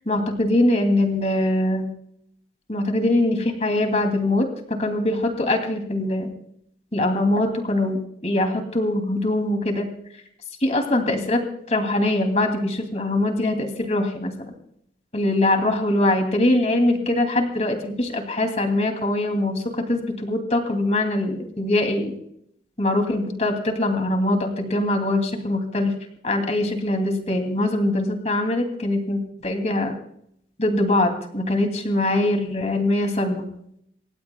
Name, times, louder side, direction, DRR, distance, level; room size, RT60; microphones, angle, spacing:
voice 1, 0.1-1.9 2.7-4.5 4.8-6.3 6.9-9.9 10.6-11.4 11.7-14.5 15.1-22.2 22.8-26.0 26.2-30.0 30.6-33.5, left 1 dB, 40° left, 4 dB, 2.7 m, -22 dB
27.5 x 15.5 x 2.3 m, 0.72 s
head